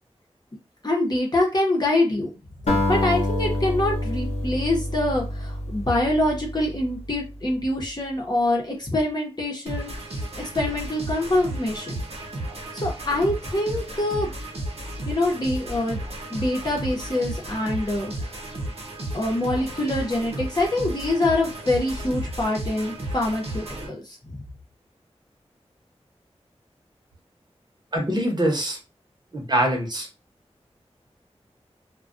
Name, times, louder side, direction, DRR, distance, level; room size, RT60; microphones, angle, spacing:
voice 1, 0.8-2.3 2.9-9.9 10.4-12.0 12.8-14.3 15.1-16.0 16.3-18.1 19.1-24.0, left 1 dB, 40° left, -2 dB, 0.8 m, -25 dB
Acoustic guitar, 2.7-7.1, left 1 dB, 85° left, 0.9 m, -27 dB
sound 1, 9.7-23.9, right 1 dB, 65° right, 0.8 m, -33 dB
voice 2, 27.9-28.8 29.3-30.1, right 1 dB, 40° right, 0 dB, 0.9 m, -23 dB
2.3 x 2.2 x 2.5 m, 0.28 s
wide cardioid pair, 80°, 11 cm